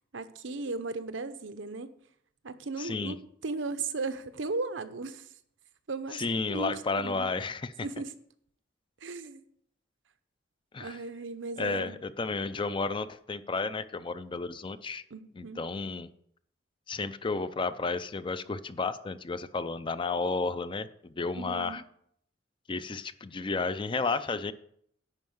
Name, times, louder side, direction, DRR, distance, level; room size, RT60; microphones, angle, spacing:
voice 1, 0.1-1.9 2.4-3.2 3.4-5.3 5.9-7.3 7.8-8.1 9.0-9.4 10.8-12.0 15.1-15.6 21.3-21.8, right 3 dB, 80° right, 11 dB, 0.8 m, -36 dB
voice 2, 2.8-3.2 6.1-7.9 10.7-11.0 11.6-15.0 15.4-16.1 16.9-21.8 22.7-24.5, left 4 dB, 25° left, 13 dB, 0.5 m, -32 dB
11.0 x 4.7 x 7.9 m, 0.67 s
head